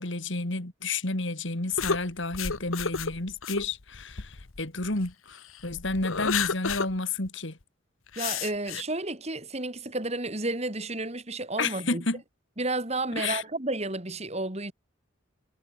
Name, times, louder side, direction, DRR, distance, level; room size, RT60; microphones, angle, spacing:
voice 1, 0.0-7.6 11.6-12.2 13.2-13.4, left 3 dB, 65° left, 2.7 m, -31 dB
sound 1, 1.8-5.1 5.6-6.9 7.3-7.4 8.1-8.8, left 6 dB, 85° left, 1.3 m, -31 dB
voice 2, 8.2-12.0 12.6-14.7, right 2 dB, 30° right, 3.0 m, -31 dB
head